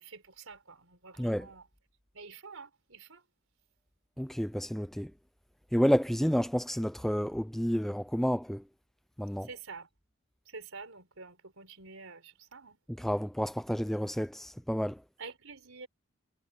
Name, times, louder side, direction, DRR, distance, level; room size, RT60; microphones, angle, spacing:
voice 1, 0.0-1.6 2.1-3.2 9.5-9.9 10.5-12.8 15.2-15.9, right 4 dB, 70° right, 4.6 m, -48 dB
voice 2, 4.2-5.1 5.7-8.6 9.2-9.5 13.0-15.0, equal, ahead, 0.5 m, -30 dB
head